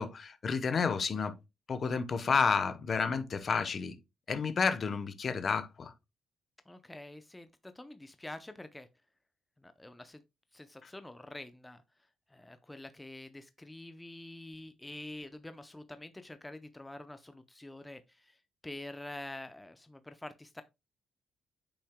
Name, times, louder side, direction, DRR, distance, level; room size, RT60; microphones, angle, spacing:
voice 1, 0.0-1.3 1.7-3.9 4.3-5.9 10.8-10.9, left 5 dB, 45° left, 0.9 m, -30 dB
voice 2, 6.7-8.9 9.6-10.2 10.5-11.8 12.3-18.4 18.6-20.6, left 1 dB, 10° left, 0.6 m, -46 dB
8.5 x 5.7 x 2.2 m
cardioid pair, 90°, 0 cm